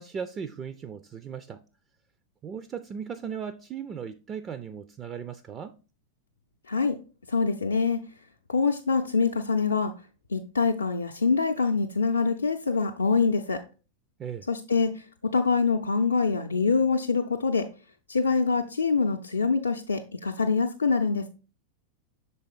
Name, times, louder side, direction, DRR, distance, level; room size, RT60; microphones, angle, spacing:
voice 1, 0.0-1.6 2.4-5.7 14.2-14.5, right 7 dB, 25° right, 0.4 m, -37 dB
voice 2, 6.7-7.0 7.3-8.0 8.5-9.9 10.3-13.6 14.5-17.7 18.1-21.3, left 4 dB, 75° left, 0.4 m, -25 dB
6.6 x 4.1 x 3.7 m
figure-of-eight pair, 90°, 0 cm